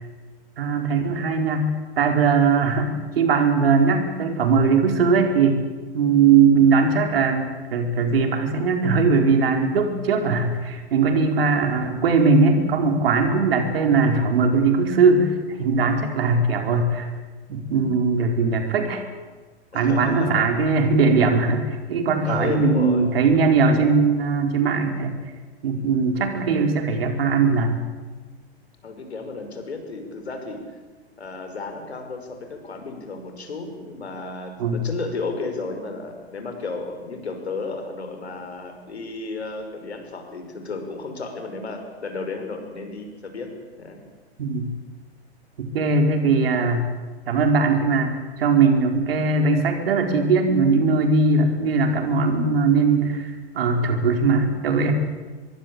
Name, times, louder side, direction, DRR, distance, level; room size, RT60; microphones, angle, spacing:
voice 1, 0.6-1.7 2.0-5.6 5.9-17.1 17.5-19.0 19.7-25.2 25.6-27.8 34.6-34.8 44.4-44.7 45.6-46.9 47.3-54.9, right 4 dB, 60° right, 5 dB, 4.8 m, -20 dB
voice 2, 19.7-20.8 22.3-23.1 25.7-25.9 28.8-30.7 31.2-44.0, left 3 dB, 75° left, 6 dB, 5.8 m, -33 dB
24.5 x 22.5 x 8.8 m, 1.3 s
figure-of-eight pair, 100°, 33 cm